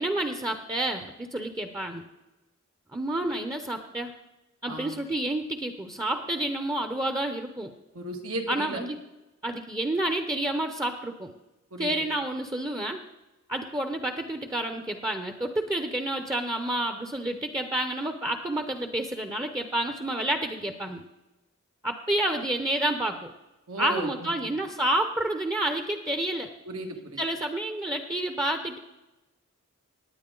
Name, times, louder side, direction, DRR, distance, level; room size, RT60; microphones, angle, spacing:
voice 1, 0.0-2.0 2.9-4.1 4.6-7.7 8.5-9.0 9.4-11.3 11.8-13.0 13.5-21.0 21.8-23.3 23.8-26.5 27.2-28.8, right 1 dB, 15° right, 6 dB, 0.7 m, -29 dB
voice 2, 4.7-5.0 7.9-8.8 11.7-11.9 23.7-24.3 26.7-27.2, right 2 dB, 85° right, 2 dB, 2.0 m, -35 dB
18.0 x 9.5 x 3.8 m, 1.0 s
head